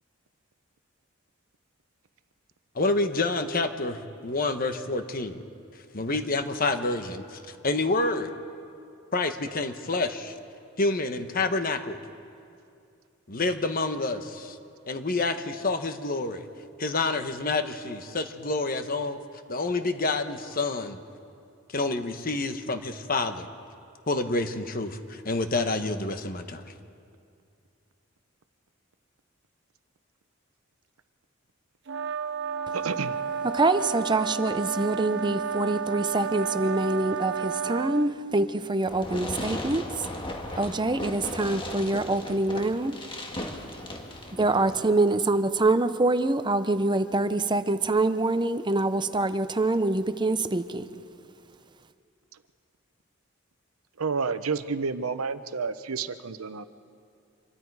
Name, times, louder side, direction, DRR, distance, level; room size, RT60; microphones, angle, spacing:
voice 1, 2.7-5.4 5.9-8.3 9.1-10.3 10.8-12.0 13.3-14.6 14.9-16.4 16.8-19.2 19.5-21.0 21.7-23.5 24.1-26.7, left 3 dB, 40° left, 8 dB, 1.2 m, -28 dB
sound 1, 31.9-38.1, right 6 dB, 60° right, 0.8 m, -31 dB
voice 2, 32.7-33.2 54.0-56.6, right 5 dB, 90° right, 12 dB, 0.8 m, -30 dB
voice 3, 33.4-40.1 40.6-43.0 44.3-50.9, right 2 dB, 20° right, 11 dB, 0.7 m, -25 dB
Fireworks, 38.9-44.9, left 1 dB, 25° left, 1.6 m, -37 dB
26.5 x 23.0 x 4.8 m, 2.4 s
head